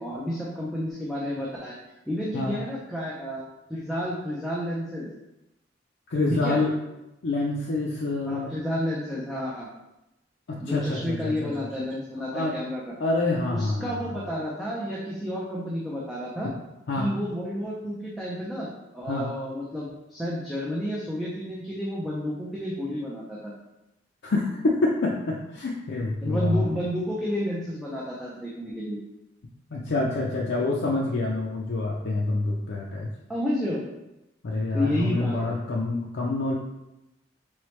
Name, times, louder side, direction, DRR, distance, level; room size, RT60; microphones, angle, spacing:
voice 1, 0.0-1.7 2.1-5.1 6.3-6.6 8.3-9.7 10.6-12.9 13.5-16.5 16.9-23.5 26.2-29.0 33.3-33.8 34.7-35.6, equal, ahead, -7 dB, 0.5 m, -31 dB
voice 2, 6.1-6.7 7.2-8.5 10.5-11.7 12.3-12.6 13.0-14.0 16.9-17.1 19.1-19.3 24.2-26.7 29.7-33.1 34.4-36.5, left 2 dB, 65° left, -3 dB, 0.5 m, -27 dB
3.9 x 3.1 x 3.1 m, 0.93 s
head